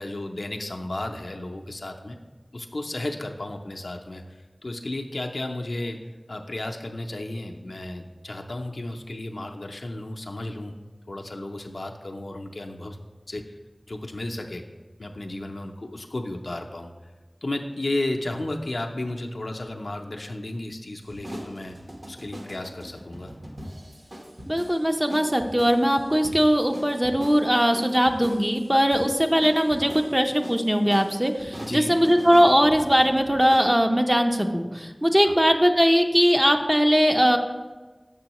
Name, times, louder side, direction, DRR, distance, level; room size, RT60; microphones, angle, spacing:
voice 1, 0.0-2.2 2.5-6.0 6.3-10.7 11.1-13.0 13.3-13.4 13.9-14.6 15.0-16.9 17.4-21.8 22.1-23.3 31.5-32.0 35.2-35.4, left 1 dB, 80° left, 3 dB, 0.5 m, -33 dB
sound 1, 21.0-33.7, equal, 50° right, 1.1 m, -41 dB
voice 2, 24.5-37.4, equal, 15° right, 5 dB, 0.5 m, -20 dB
6.8 x 6.1 x 2.9 m, 1.3 s
wide cardioid pair, 45°, 0 cm